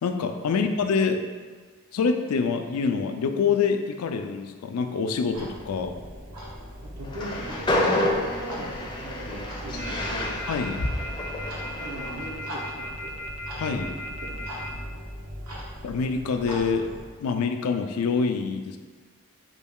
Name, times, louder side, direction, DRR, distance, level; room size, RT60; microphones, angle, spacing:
voice 1, 0.0-1.2 1.9-5.9 10.5-10.8 13.6-13.9 15.8-16.9 17.2-18.8, left 5 dB, 80° left, 6 dB, 0.4 m, -26 dB
Clock, 5.3-17.1, equal, 85° right, 1.1 m, -38 dB
voice 2, 6.9-10.4 11.8-13.2 13.7-15.0, right 1 dB, 70° right, 0 dB, 0.7 m, -40 dB
Train, 7.0-12.3, left 1 dB, 20° left, 0.4 m, -29 dB
sound 1, 9.8-14.7, left 1 dB, 30° right, 0.5 m, -37 dB
5.1 x 2.3 x 3.6 m, 1.5 s
head